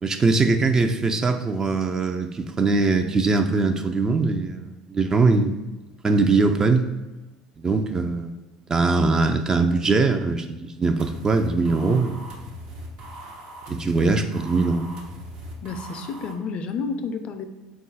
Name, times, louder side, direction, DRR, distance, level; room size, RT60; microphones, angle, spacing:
voice 1, 0.0-5.6 6.0-6.8 7.6-8.4 8.7-12.3 13.7-14.9, right 3 dB, 25° right, 7 dB, 0.4 m, -21 dB
sound 1, 11.0-16.3, equal, 65° right, 0.9 m, -40 dB
voice 2, 15.6-17.4, left 4 dB, 50° left, 8 dB, 0.4 m, -30 dB
3.7 x 2.3 x 4.0 m, 1.1 s
hypercardioid pair, 80°, 2 cm